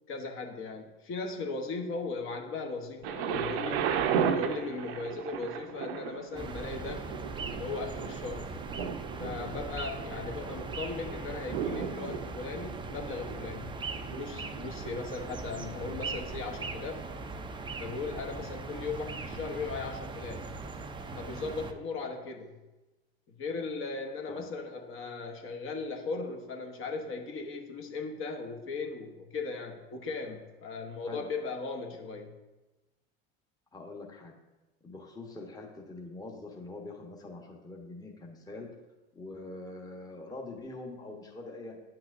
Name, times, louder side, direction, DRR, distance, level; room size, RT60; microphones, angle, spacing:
voice 1, 0.1-3.9 4.3-8.5 9.2-13.7 14.1-17.1 17.8-20.5 21.2-22.5 23.4-32.3, left 4 dB, 40° left, 2 dB, 1.1 m, -38 dB
Thunder, 3.0-14.9 15.6-15.7, right 7 dB, 75° right, 0.8 m, -35 dB
sound 1, 6.3-21.7, right 3 dB, 15° right, 0.5 m, -40 dB
voice 2, 33.7-34.3 34.8-38.7 39.1-41.8, left 2 dB, 10° left, 0 dB, 1.0 m, -44 dB
9.3 x 5.9 x 2.6 m, 1.1 s
supercardioid pair, 100°, 31 cm